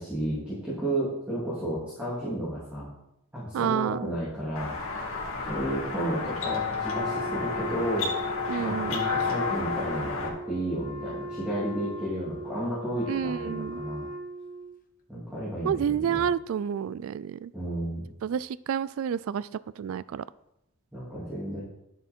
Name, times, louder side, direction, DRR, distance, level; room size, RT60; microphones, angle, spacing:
voice 1, 0.0-2.9 3.3-4.8 5.5-8.1 8.6-14.1 15.1-16.2 17.5-18.1 20.9-21.6, right 1 dB, 5° right, -9 dB, 2.8 m, -32 dB
voice 2, 3.5-4.1 8.5-9.0 13.1-13.8 15.6-17.5 18.2-19.5 19.8-20.2, right 8 dB, 70° right, 18 dB, 0.3 m, -29 dB
sound 1, 4.6-10.3, left 5 dB, 70° left, 2.4 m, -31 dB
Wind instrument woodwind instrument, 6.8-14.7, right 1 dB, 40° left, 1.0 m, -38 dB
11.5 x 7.1 x 4.4 m, 0.84 s
head